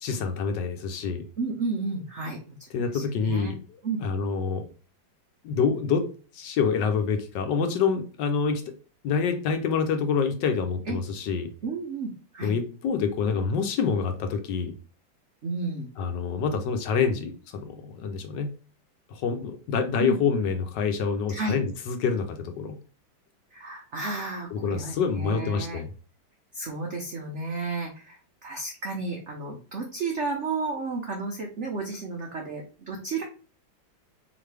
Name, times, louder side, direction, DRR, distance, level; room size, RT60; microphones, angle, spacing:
voice 1, 0.0-1.2 2.7-4.7 5.4-6.1 6.3-8.7 9.0-11.5 12.4-14.7 16.0-18.5 19.1-22.8 24.5-25.9, left 5 dB, 70° left, 6 dB, 1.2 m, -27 dB
voice 2, 1.4-3.5 3.8-4.0 10.9-11.0 11.6-12.5 15.4-15.9 20.0-20.2 21.3-21.5 23.5-25.8 26.5-33.2, right 3 dB, 85° right, 1 dB, 0.6 m, -32 dB
3.9 x 3.1 x 3.2 m, 0.36 s
omnidirectional pair, 2.2 m